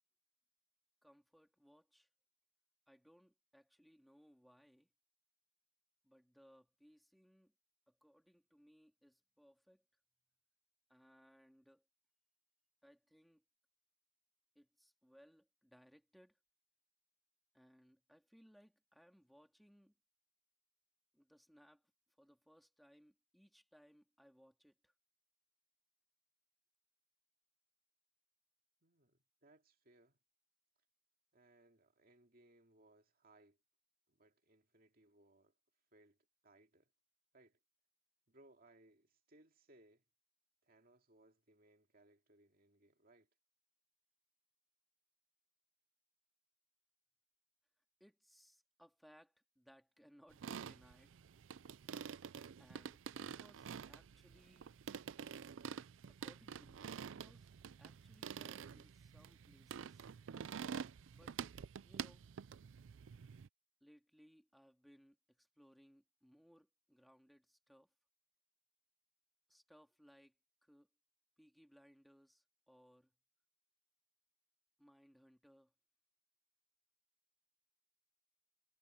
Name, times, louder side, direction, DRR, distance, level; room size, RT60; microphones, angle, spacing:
voice 1, 1.0-2.1 2.9-4.9 6.0-7.5 7.9-9.9 10.9-11.9 12.8-13.4 14.6-16.4 17.5-20.0 21.1-21.9 22.2-24.9 48.0-51.2 52.6-54.7 56.1-57.5 57.8-60.1 61.1-61.4 61.8-62.3 63.8-67.9 69.5-70.3 70.6-70.9 71.4-73.1 74.8-75.7, equal, ahead, 2.2 m, -67 dB
voice 2, 28.8-30.2 31.3-33.6 34.1-35.6 35.9-36.2 36.4-36.9 37.3-37.6 38.3-40.0 40.6-43.3, right 2 dB, 50° right, 2.6 m, -68 dB
sound 1, 50.3-63.5, right 7 dB, 90° right, 0.4 m, -48 dB
head